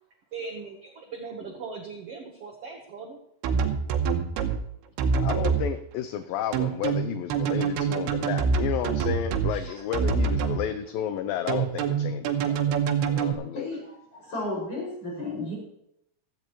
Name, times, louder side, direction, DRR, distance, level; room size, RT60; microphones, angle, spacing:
voice 1, 0.3-3.2, right 4 dB, 65° right, 2 dB, 1.5 m, -39 dB
sound 1, 3.4-4.6 5.0-5.6 6.5-9.5 9.9-10.6 11.5-13.3, right 6 dB, 90° right, 3.0 m, -25 dB
voice 2, 5.2-12.8 13.1-13.7, left 10 dB, 80° left, 10 dB, 2.1 m, -32 dB
voice 3, 13.1-15.5, left 2 dB, 35° left, -4 dB, 6.7 m, -35 dB
15.5 x 13.5 x 3.1 m, 0.76 s
omnidirectional pair, 4.5 m